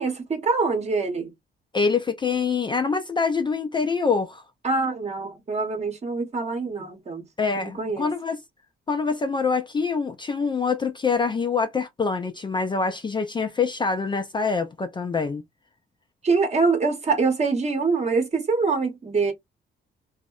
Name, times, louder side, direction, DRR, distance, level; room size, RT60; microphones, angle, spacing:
voice 1, 0.0-1.3 4.6-7.2 7.6-8.1 16.2-19.3, right 4 dB, 35° right, 0.8 m, -24 dB
voice 2, 1.7-4.4 7.4-8.4 8.9-15.4, left 5 dB, 25° left, 0.3 m, -25 dB
2.7 x 2.0 x 2.3 m
cardioid pair, 90°, 20 cm